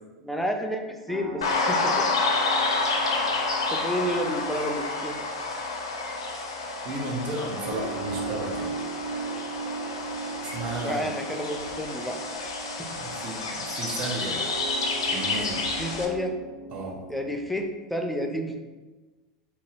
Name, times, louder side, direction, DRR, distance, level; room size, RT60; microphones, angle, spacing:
voice 1, 0.2-2.1 3.7-5.2 10.8-12.5 12.8-12.9 15.8-16.3 17.1-18.6, equal, ahead, 3 dB, 0.4 m, -30 dB
sound 1, 1.1-17.6, right 3 dB, 85° right, 0.5 m, -39 dB
sound 2, 1.4-16.1, left 3 dB, 75° left, 0.4 m, -29 dB
voice 2, 6.8-8.7 10.5-11.0 12.9-14.4 15.0-15.6 16.7-17.0, right 2 dB, 45° right, 0 dB, 0.7 m, -33 dB
2.8 x 2.3 x 3.3 m, 1.2 s
figure-of-eight pair, 80°, 3 cm